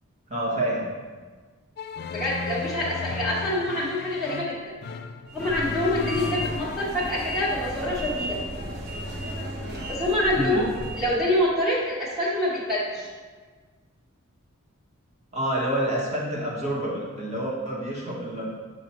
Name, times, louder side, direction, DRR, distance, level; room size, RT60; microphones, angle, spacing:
voice 1, 0.3-0.9 10.3-10.6 15.3-18.5, right 1 dB, 35° right, -4 dB, 1.4 m, -28 dB
sound 1, 1.8-6.8, left 4 dB, 50° left, 0.3 m, -34 dB
voice 2, 2.1-4.7 5.3-8.4 9.9-10.7 10.9-13.1, left 1 dB, ahead, -10 dB, 1.4 m, -26 dB
sound 2, 5.3-11.2, equal, 50° right, 1.0 m, -34 dB
7.1 x 4.9 x 3.0 m, 1.4 s
head